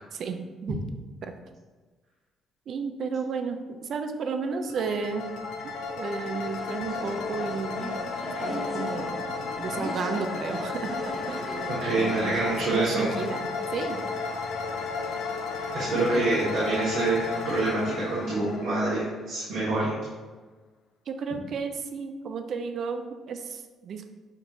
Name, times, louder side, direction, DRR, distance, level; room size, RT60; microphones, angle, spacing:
voice 1, 0.2-0.8 1.2-1.3 2.7-5.3 5.6-7.9 8.4-9.3 9.6-11.5 12.0-12.4 12.7-13.5 13.7-14.0 21.1-24.0, right 5 dB, 60° right, 7 dB, 0.4 m, -33 dB
sound 1, 4.7-19.5, left 4 dB, 85° left, 0.5 m, -33 dB
sound 2, 6.0-13.5, equal, 20° left, 1.0 m, -39 dB
voice 2, 11.8-13.1 15.7-19.9, right 2 dB, 85° right, -9 dB, 1.4 m, -26 dB
6.6 x 2.5 x 2.9 m, 1.3 s
cardioid pair, 95°, 0 cm